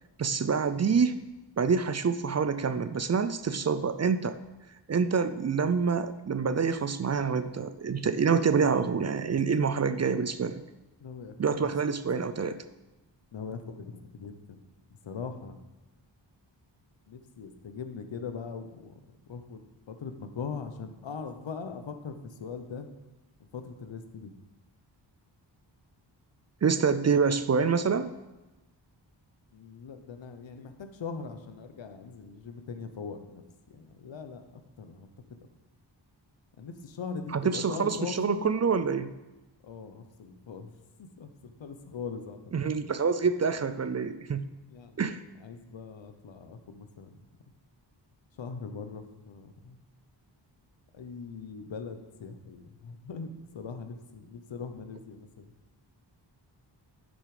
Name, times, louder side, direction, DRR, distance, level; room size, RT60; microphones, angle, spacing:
voice 1, 0.2-1.2 1.6-4.4 4.9-10.6 11.4-12.6 26.6-28.1 37.3-39.1 42.5-44.5 45.0-45.2, right 5 dB, 40° right, 11 dB, 0.4 m, -26 dB
voice 2, 11.0-11.7 13.3-14.6 15.0-15.6 17.1-18.9 19.3-22.9 23.5-24.3 29.5-33.4 33.7-34.4 34.8-35.4 36.6-38.5 39.6-40.7 41.0-42.4 44.7-45.0 45.4-47.2 48.4-49.8 50.9-55.5, left 5 dB, 80° left, 8 dB, 1.0 m, -41 dB
10.5 x 6.3 x 5.0 m, 1.1 s
wide cardioid pair, 100°, 44 cm